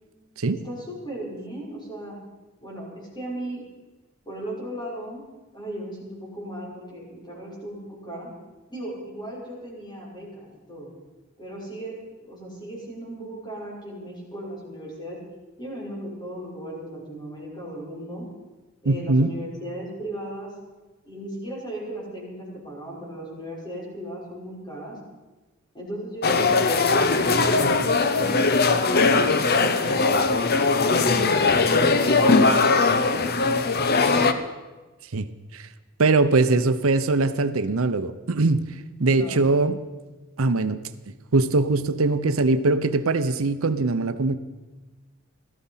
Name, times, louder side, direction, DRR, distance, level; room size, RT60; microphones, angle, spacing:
voice 1, 0.5-2.2 2.6-3.6 4.3-5.2 5.5-8.3 8.7-10.9 11.4-15.2 15.6-18.2 18.8-20.5 21.0-25.0 25.7-27.5 28.0-30.1 30.9-34.4 39.1-39.4, right 1 dB, 20° left, -5 dB, 6.1 m, -36 dB
voice 2, 18.9-19.3 35.1-35.3 35.5-35.7 36.0-38.7 39.0-39.8 40.4-40.8 41.3-44.3, right 3 dB, 80° right, 11 dB, 0.7 m, -21 dB
sound 1, 26.2-34.3, left 3 dB, 50° left, 0.9 m, -20 dB
17.0 x 13.5 x 5.7 m, 1.2 s
head